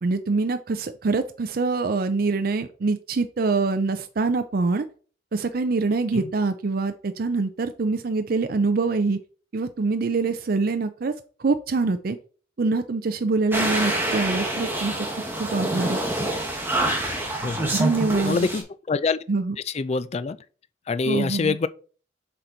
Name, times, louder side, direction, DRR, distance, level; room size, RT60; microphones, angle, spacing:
voice 1, 0.0-4.9 5.3-9.2 9.5-11.1 11.4-12.2 12.6-15.1 15.4-16.0 17.7-18.4 19.3-19.6 21.1-21.6, right 3 dB, 55° right, 0.5 m, -24 dB
sound 1, 13.5-18.6, right 1 dB, 10° right, 1.4 m, -26 dB
voice 2, 17.4-17.7 18.2-19.2 19.7-20.4 20.9-21.7, left 4 dB, 35° left, 0.4 m, -25 dB
7.6 x 4.4 x 3.9 m
head